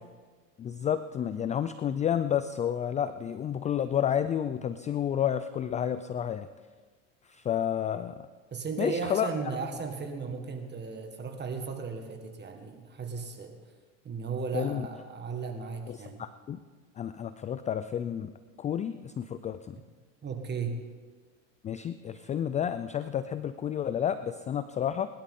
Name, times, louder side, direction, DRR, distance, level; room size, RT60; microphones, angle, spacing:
voice 1, 0.6-6.5 7.3-8.1 8.8-9.3 14.5-14.9 15.9-16.6 17.0-18.3 18.6-19.8 21.6-25.1, left 9 dB, 20° left, 12 dB, 0.3 m, -30 dB
voice 2, 8.5-13.6 14.0-16.2 20.2-20.8, right 5 dB, 25° right, 5 dB, 1.7 m, -35 dB
22.5 x 12.0 x 3.8 m, 1.4 s
supercardioid pair, 105°, 38 cm